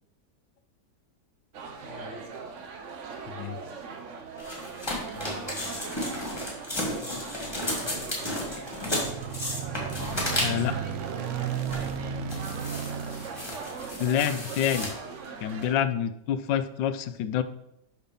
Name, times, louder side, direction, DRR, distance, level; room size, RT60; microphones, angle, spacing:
sound 1, 1.5-15.8, right 5 dB, 55° right, 0.9 m, -40 dB
voice 1, 1.8-2.2 5.1-5.8 6.7-8.6 12.2-12.6, left 2 dB, 30° left, -1 dB, 1.2 m, -46 dB
voice 2, 3.3-3.6 10.4-10.8 14.0-14.9 15.4-17.4, left 9 dB, 85° left, 11 dB, 1.3 m, -27 dB
sound 2, 4.4-10.8 11.4-11.9 12.3-14.9, left 1 dB, 15° left, 1.8 m, -33 dB
sound 3, 8.9-14.3, right 7 dB, 75° right, 0.7 m, -34 dB
5.9 x 5.5 x 5.3 m, 0.80 s
omnidirectional pair, 1.9 m